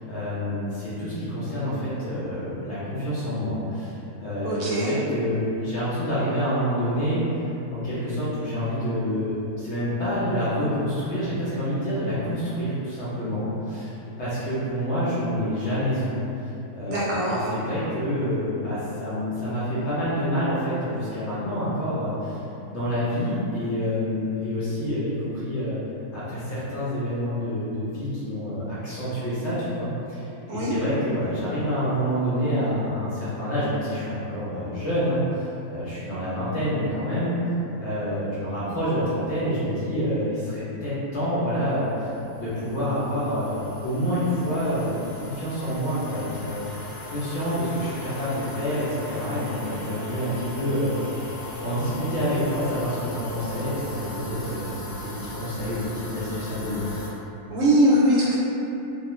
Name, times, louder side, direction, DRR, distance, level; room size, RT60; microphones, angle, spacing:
voice 1, 0.1-7.2 7.7-16.2 16.7-22.4 22.7-25.8 26.1-30.2 30.5-37.4 37.8-42.1 42.4-46.8 47.1-50.9 51.6-56.8, equal, 60° left, -11 dB, 0.8 m, -27 dB
voice 2, 4.4-5.0 16.9-17.5 30.5-30.7 57.5-58.3, right 1 dB, 70° right, -7 dB, 0.9 m, -21 dB
sound 1, 41.9-57.1, left 1 dB, 90° left, 1.2 m, -37 dB
2.4 x 2.4 x 3.0 m, 3.0 s
omnidirectional pair, 1.6 m